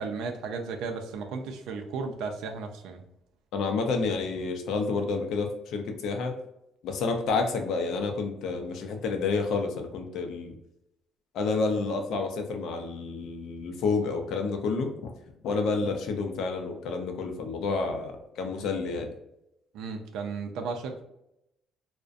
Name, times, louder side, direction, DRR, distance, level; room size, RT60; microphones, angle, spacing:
voice 1, 0.0-3.0 19.7-21.0, right 4 dB, 80° right, 5 dB, 0.4 m, -34 dB
voice 2, 3.5-6.3 6.8-10.6 11.3-15.1 15.4-19.1, left 4 dB, 65° left, 4 dB, 0.4 m, -29 dB
2.4 x 2.1 x 2.5 m, 0.84 s
cardioid pair, 165°, 0 cm